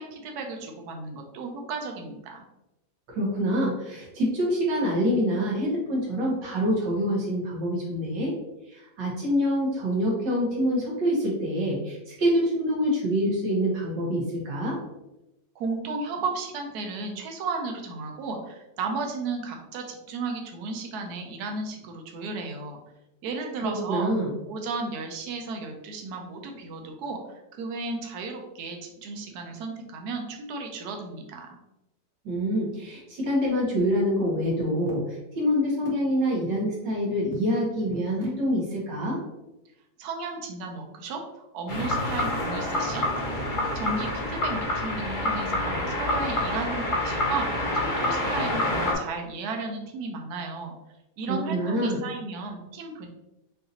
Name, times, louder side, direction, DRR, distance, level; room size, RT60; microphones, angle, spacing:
voice 1, 0.0-2.4 15.6-22.8 23.2-24.1 24.5-31.6 40.0-43.1 43.7-47.5 47.7-50.7 51.2-53.1, right 3 dB, 70° right, 2 dB, 1.2 m, -34 dB
voice 2, 3.1-8.3 8.7-14.8 23.6-24.3 32.2-39.2 51.3-52.0, equal, 90° right, -4 dB, 2.1 m, -26 dB
sound 1, 41.7-48.9, left 1 dB, 35° left, 0.8 m, -27 dB
5.7 x 2.6 x 2.8 m, 0.94 s
omnidirectional pair, 1.9 m